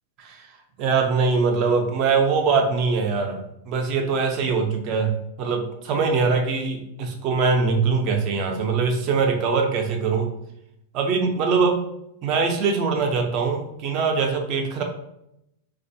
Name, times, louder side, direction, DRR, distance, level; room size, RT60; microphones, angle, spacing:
voice 1, 0.8-10.3 10.9-11.8 12.2-14.8, right 4 dB, 35° right, 4 dB, 0.5 m, -22 dB
4.2 x 2.3 x 2.7 m, 0.81 s
supercardioid pair, 165°, 0 cm